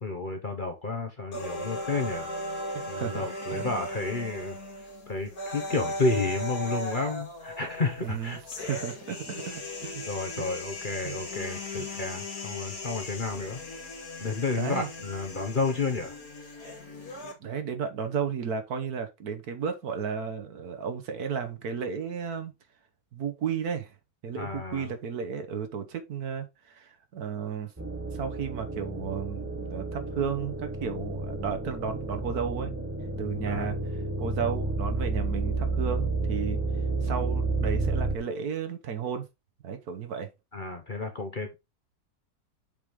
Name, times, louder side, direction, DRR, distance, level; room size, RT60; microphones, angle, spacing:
voice 1, 0.0-2.3 2.9-4.6 5.1-8.8 10.1-13.6 14.2-16.2 24.4-24.9 33.5-33.7 40.5-41.5, left 3 dB, 35° left, 1.1 m, -31 dB
sound 1, 1.3-17.3, left 1 dB, 60° left, 2.3 m, -38 dB
voice 2, 2.7-3.3 3.5-3.6 8.0-10.0 10.4-10.5 11.0-11.2 11.8-11.9 14.6-14.9 17.4-22.5 23.1-23.9 24.2-27.7 28.1-32.7 33.2-33.8 34.2-36.6 37.0-39.3 39.6-40.3, right 6 dB, 65° right, 1.5 m, -33 dB
sound 2, 27.8-38.2, right 3 dB, 10° right, 1.0 m, -31 dB
7.3 x 4.9 x 3.6 m
omnidirectional pair, 1.8 m